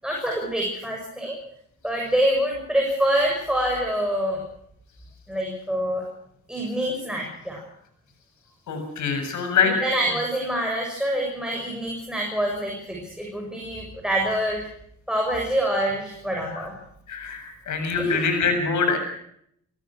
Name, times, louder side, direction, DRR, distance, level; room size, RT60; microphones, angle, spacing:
voice 1, 0.0-1.4 1.8-4.4 5.3-6.1 6.5-7.6 9.6-14.7 15.1-16.7 18.0-18.3, right 1 dB, ahead, -1 dB, 7.2 m, -26 dB
voice 2, 8.7-9.7 17.1-19.0, left 5 dB, 75° left, 7 dB, 7.5 m, -24 dB
25.0 x 17.5 x 6.4 m, 0.69 s
cardioid pair, 90°, 30 cm